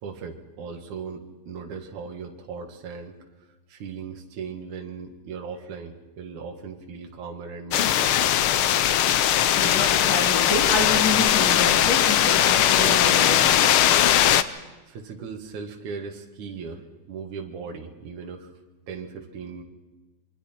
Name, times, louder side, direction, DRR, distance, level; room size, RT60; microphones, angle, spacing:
voice 1, 0.0-8.4 14.9-18.5 18.9-19.6, right 5 dB, 75° right, 3 dB, 3.2 m, -38 dB
sound 1, 7.7-14.4, left 11 dB, 90° left, 1.1 m, -19 dB
voice 2, 9.4-13.7, left 2 dB, 60° left, 1 dB, 4.4 m, -28 dB
27.5 x 23.5 x 4.4 m, 1.2 s
omnidirectional pair, 3.4 m